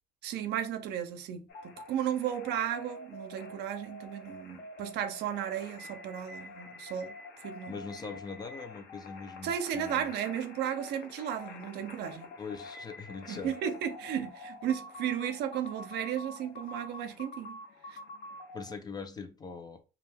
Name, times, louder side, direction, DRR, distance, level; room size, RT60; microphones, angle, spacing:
voice 1, 0.2-7.1 7.4-7.8 9.4-12.3 13.3-17.6 17.9-18.0, right 9 dB, 80° right, 0.5 m, -34 dB
sound 1, 1.5-18.7, left 2 dB, 70° left, 0.7 m, -47 dB
voice 2, 7.7-10.1 12.4-13.6 18.5-19.8, left 4 dB, 25° left, 0.5 m, -42 dB
2.3 x 2.2 x 3.3 m
cardioid pair, 110°, 17 cm